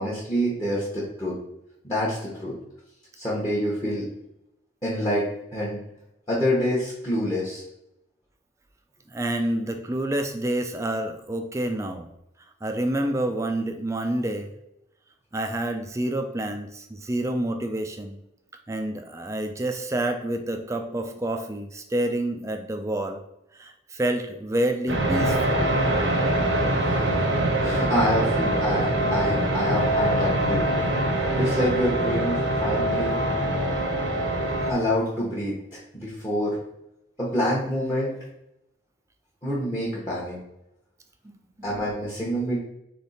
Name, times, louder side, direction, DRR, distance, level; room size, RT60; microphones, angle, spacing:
voice 1, 0.0-1.3 1.8-2.5 3.2-4.0 4.8-5.2 5.5-5.8 6.3-7.6 27.6-30.7 31.3-33.2 34.7-35.5 35.9-36.6 37.2-38.1 39.4-40.4 41.6-42.6, equal, 20° left, -6 dB, 1.0 m, -26 dB
voice 2, 9.1-12.1 12.6-14.5 15.3-18.2 18.7-23.2 23.5-25.7, right 1 dB, 15° right, 6 dB, 0.4 m, -28 dB
sound 1, 24.9-34.7, right 1 dB, 75° right, 0.8 m, -24 dB
3.6 x 3.4 x 4.1 m, 0.85 s
head